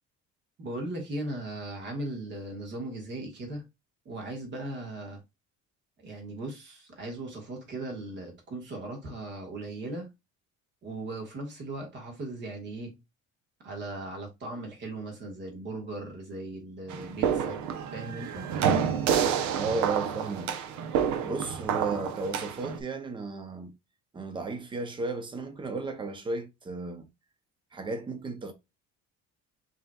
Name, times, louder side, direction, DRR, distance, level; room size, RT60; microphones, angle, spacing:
voice 1, 0.6-3.6 4.0-5.2 6.0-10.1 10.8-12.9 13.6-17.6 17.9-18.5, right 2 dB, 40° right, 1.5 m, -38 dB
sound 1, 16.9-22.8, right 8 dB, 75° right, 0.7 m, -29 dB
voice 2, 19.6-20.5 21.2-23.7 24.1-27.1 27.7-28.5, right 3 dB, 15° right, 0.6 m, -34 dB
5.5 x 2.9 x 2.3 m
cardioid pair, 170°, 29 cm